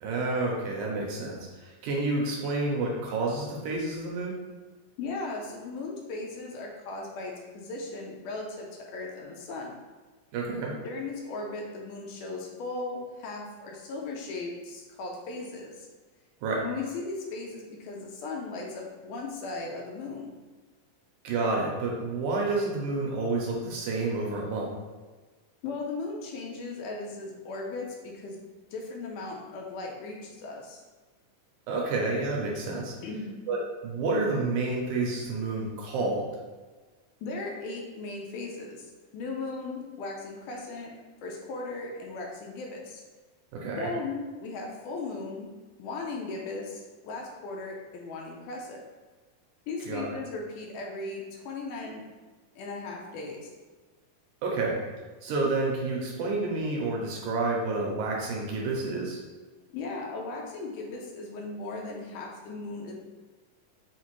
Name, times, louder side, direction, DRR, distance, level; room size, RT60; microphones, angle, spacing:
voice 1, 0.0-4.4 10.3-10.7 16.4-16.6 21.2-24.7 31.7-32.9 33.5-36.3 43.5-43.9 49.9-50.1 54.4-54.8 55.2-59.2, right 3 dB, 75° right, -2 dB, 2.0 m, -29 dB
voice 2, 5.0-9.7 10.8-15.9 16.6-20.3 25.6-28.4 28.7-30.8 33.0-33.3 37.2-38.9 39.1-41.0 41.2-43.0 43.8-45.5 45.8-48.8 49.7-52.1 52.6-53.5 59.7-62.9, left 3 dB, 80° left, -1 dB, 2.0 m, -37 dB
5.7 x 2.4 x 3.0 m, 1.3 s
omnidirectional pair, 3.9 m